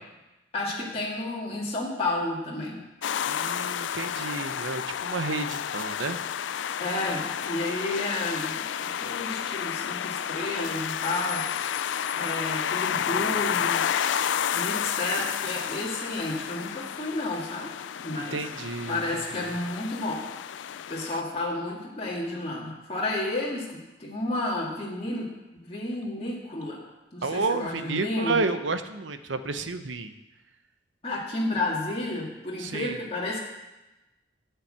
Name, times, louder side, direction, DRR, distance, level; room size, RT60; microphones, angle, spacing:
voice 1, 0.5-2.8 6.8-11.5 11.7-11.9 12.1-17.7 18.0-18.4 18.9-20.2 20.6-25.3 25.6-26.8 27.1-28.4 31.0-33.4, left 2 dB, 30° left, -4 dB, 2.0 m, -31 dB
sound 1, 3.0-21.2, left 9 dB, 70° left, 0.4 m, -31 dB
voice 2, 3.3-6.2 13.0-13.2 18.1-19.5 27.2-30.1 32.6-33.0, right 3 dB, 80° right, 9 dB, 0.9 m, -31 dB
12.0 x 5.7 x 8.8 m, 1.0 s
head